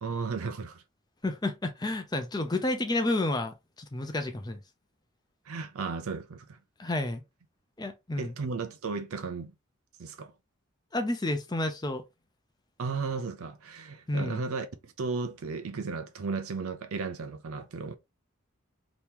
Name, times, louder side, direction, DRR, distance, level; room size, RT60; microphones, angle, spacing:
voice 1, 0.0-0.8 5.5-6.6 8.2-9.5 10.0-10.3 12.8-17.9, right 4 dB, 90° right, 0.5 m, -35 dB
voice 2, 1.2-4.6 6.8-7.2 7.8-8.4 10.9-12.0 14.1-14.4, left 2 dB, 20° left, 0.5 m, -30 dB
3.0 x 2.8 x 3.5 m
head